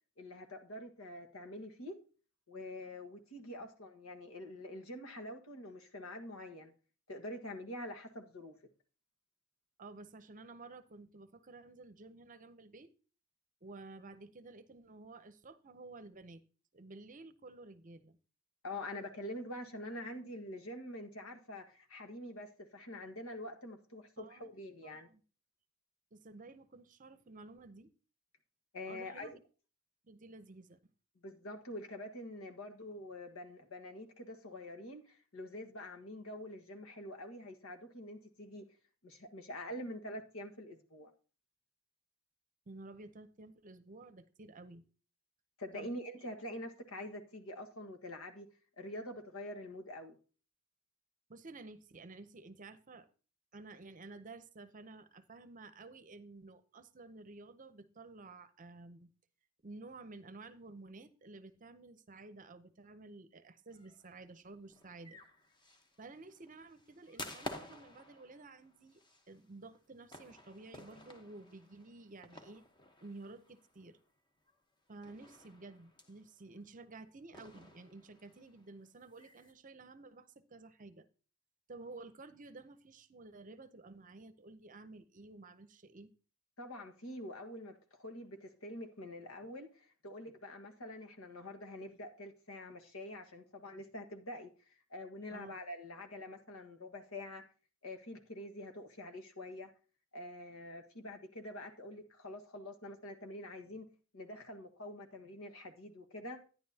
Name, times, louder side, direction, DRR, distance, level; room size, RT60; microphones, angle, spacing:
voice 1, 0.2-2.0 2.5-6.7 7.1-8.5 18.6-25.1 28.7-29.4 31.2-38.6 39.0-41.1 45.6-48.5 48.8-50.2 86.6-97.4 97.8-99.7 100.1-103.9 104.1-106.4, left 1 dB, 75° left, 1.5 m, -46 dB
voice 2, 9.8-12.9 13.6-16.4 16.7-18.2 24.2-24.5 24.8-25.2 26.1-27.9 28.9-29.4 30.0-30.9 42.7-44.8 45.7-45.9 51.3-53.1 53.5-59.1 59.6-65.2 66.0-69.0 69.3-72.6 73.0-74.0 74.9-81.1 81.7-86.1 95.3-95.6, right 3 dB, 40° right, 0.7 m, -52 dB
sound 1, 63.7-74.1 74.5-74.6 75.0-76.6 77.3-79.5, left 1 dB, 20° left, 1.0 m, -52 dB
11.5 x 10.0 x 2.8 m
head